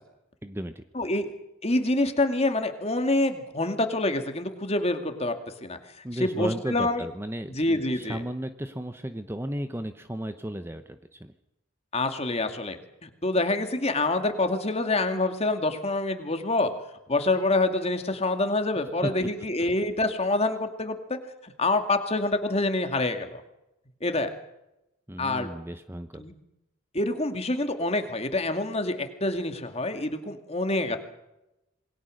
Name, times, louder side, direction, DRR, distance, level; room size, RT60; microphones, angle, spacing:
voice 1, 0.4-0.8 6.0-11.3 19.0-19.1 25.1-26.2, right 1 dB, 10° right, 9 dB, 0.8 m, -34 dB
voice 2, 0.9-1.3 1.6-5.4 5.6-5.8 6.2-7.0 7.5-8.2 11.9-16.7 17.1-23.4 24.0-24.3 25.2-25.5 26.2-26.3 26.9-31.0, left 2 dB, 30° left, 7 dB, 2.3 m, -26 dB
27.0 x 21.0 x 6.5 m, 0.92 s
head